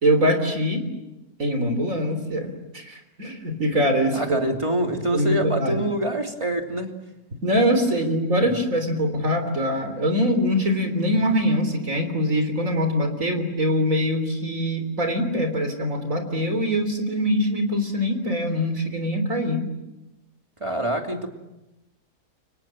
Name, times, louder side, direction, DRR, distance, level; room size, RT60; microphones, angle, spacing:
voice 1, 0.0-0.9 1.4-4.4 5.1-5.8 7.4-19.6, equal, 50° right, 6 dB, 3.9 m, -23 dB
voice 2, 4.1-6.9 20.6-21.3, right 1 dB, 20° right, 3 dB, 2.9 m, -25 dB
29.5 x 25.0 x 7.6 m, 0.99 s
omnidirectional pair, 1.7 m